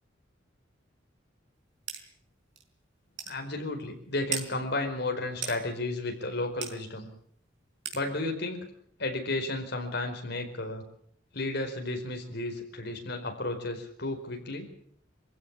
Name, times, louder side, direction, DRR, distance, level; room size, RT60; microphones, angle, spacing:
sound 1, 1.9-2.0 2.6-2.7 3.2-3.4 4.3-4.5 5.4-5.6 6.6-6.7 7.8-8.0, right 8 dB, 70° right, 4.4 m, -34 dB
voice 1, 3.3-7.1 7.9-8.7 9.0-10.8 11.3-14.7, left 2 dB, 60° left, 3 dB, 4.8 m, -33 dB
24.0 x 15.5 x 8.7 m, 0.64 s
head